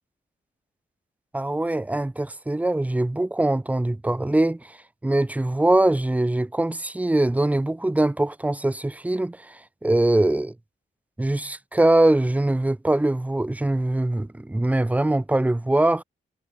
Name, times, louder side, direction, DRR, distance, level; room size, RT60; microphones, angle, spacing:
voice 1, 1.3-4.8 5.0-10.5 11.2-16.0, right 1 dB, 5° right, 0.5 m, -22 dB
cardioid pair, 95°, 20 cm